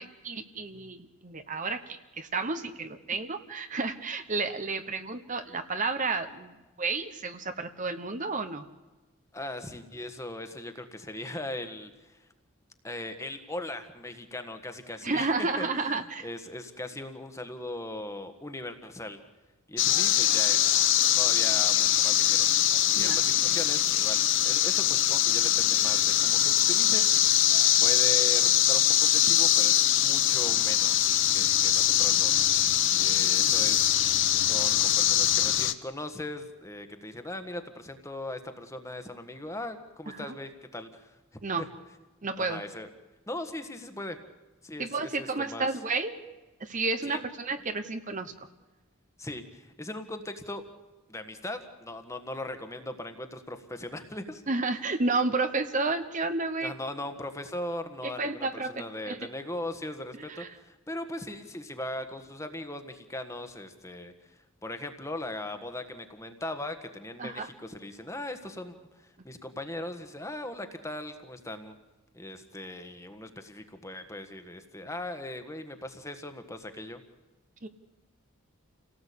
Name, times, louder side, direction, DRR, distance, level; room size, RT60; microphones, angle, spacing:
voice 1, 0.0-8.6 15.0-16.3 22.9-23.2 40.1-40.3 41.4-41.7 42.2-42.6 44.8-46.2 46.6-48.3 54.5-56.7 58.0-59.2 60.3-60.5 67.2-67.5 77.6-77.7, right 3 dB, 35° right, 9 dB, 1.1 m, -31 dB
voice 2, 9.3-12.2 12.8-19.2 19.7-20.7 21.1-22.5 22.9-27.3 27.8-32.4 33.0-33.9 34.5-41.2 41.6-41.7 42.4-42.9 43.3-44.2 44.6-45.7 47.0-47.3 49.2-50.6 51.1-54.4 56.6-71.8 72.1-77.0, left 1 dB, 15° left, 8 dB, 1.5 m, -39 dB
sound 1, 19.8-35.7, left 12 dB, 55° left, 1.0 m, -23 dB
29.0 x 18.0 x 8.6 m, 1.1 s
head